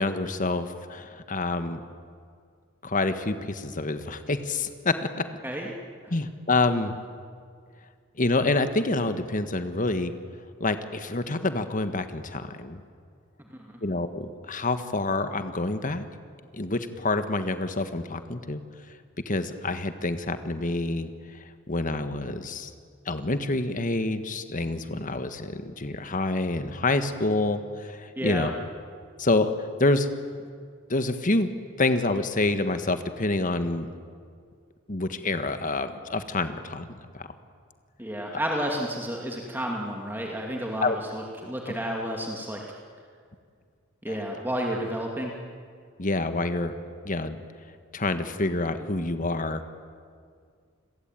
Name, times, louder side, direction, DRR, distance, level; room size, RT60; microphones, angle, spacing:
voice 1, 0.0-1.8 2.8-4.9 6.1-6.9 8.2-10.1 10.6-12.8 13.8-16.0 16.5-18.6 19.2-21.1 21.7-22.7 23.0-28.5 29.2-29.5 29.8-30.1 30.9-31.5 31.8-33.9 34.9-36.9 37.1-37.3 40.8-41.0 44.1-44.2 46.0-46.7 47.0-47.3 47.9-49.6, left 2 dB, 40° left, 9 dB, 1.5 m, -27 dB
voice 2, 28.2-28.5 38.0-42.6 44.0-45.3, equal, 10° right, 0 dB, 2.5 m, -31 dB
29.0 x 22.0 x 9.1 m, 2.1 s
head